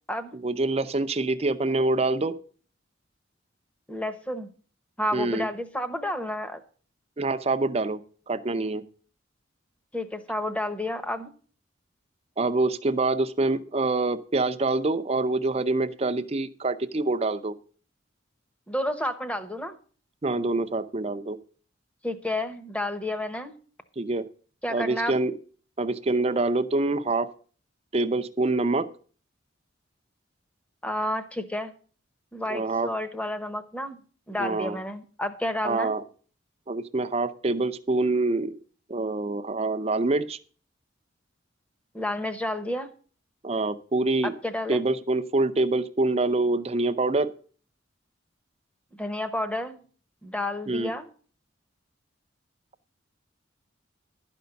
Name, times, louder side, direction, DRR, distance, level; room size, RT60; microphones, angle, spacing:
voice 1, 0.3-2.3 5.1-5.5 7.2-8.0 8.3-8.8 12.4-17.5 20.2-21.4 24.0-24.3 24.7-25.3 25.8-27.3 27.9-28.9 32.5-32.9 34.4-34.8 35.6-36.0 36.7-38.5 38.9-40.4 43.4-44.3 44.7-47.3 50.7-50.9, right 2 dB, 30° right, 12 dB, 0.6 m, -25 dB
voice 2, 3.9-4.5 5.0-6.6 9.9-11.3 18.7-19.8 22.0-23.5 24.6-25.2 30.8-31.7 32.3-34.0 34.3-35.9 41.9-42.9 44.2-44.8 48.9-49.8 50.2-51.1, left 1 dB, 5° left, 9 dB, 0.9 m, -30 dB
12.0 x 5.3 x 6.9 m, 0.42 s
head